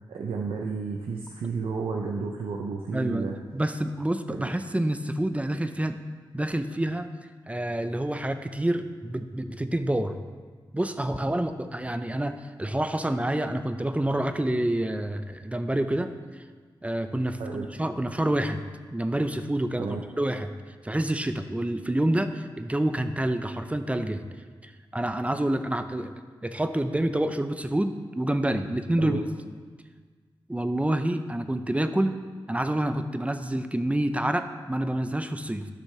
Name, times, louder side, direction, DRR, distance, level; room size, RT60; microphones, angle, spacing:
voice 1, 0.0-3.4 4.3-4.5 17.4-17.7 19.8-20.0 29.0-29.2, right 4 dB, 85° right, 1 dB, 0.5 m, -32 dB
voice 2, 2.9-3.3 3.5-6.0 6.3-7.1 7.5-10.2 10.7-16.1 16.8-18.6 18.9-20.5 20.8-24.3 24.6-26.1 26.4-29.2 30.5-32.2 32.5-35.7, right 1 dB, 15° right, 9 dB, 0.6 m, -27 dB
11.5 x 6.3 x 3.2 m, 1.5 s
cardioid pair, 45°, 9 cm